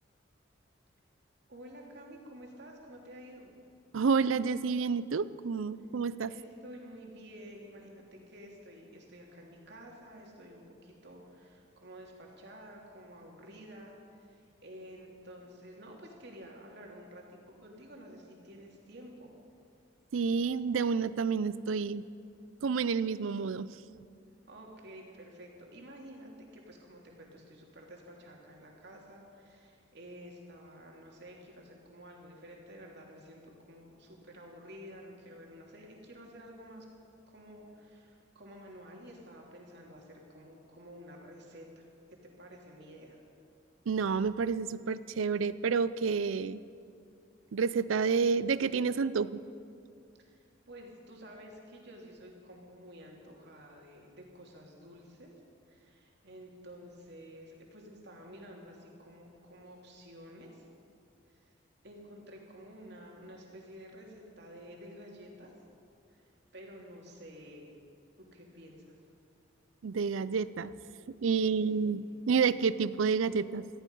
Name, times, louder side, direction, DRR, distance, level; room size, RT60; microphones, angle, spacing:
voice 1, 1.5-3.5 6.3-19.3 24.5-36.9 37.3-41.8 42.4-43.2 50.2-50.4 50.7-55.3 55.7-60.7 61.3-61.5 61.8-65.5 66.1-67.7 68.2-69.0 71.5-71.9, equal, 60° right, -1 dB, 2.9 m, -51 dB
voice 2, 3.9-6.3 20.1-22.1 22.6-23.8 43.9-46.6 47.5-49.4 69.8-70.7 71.1-73.7, right 5 dB, 90° right, 16 dB, 0.5 m, -29 dB
18.0 x 14.5 x 5.5 m, 2.4 s
head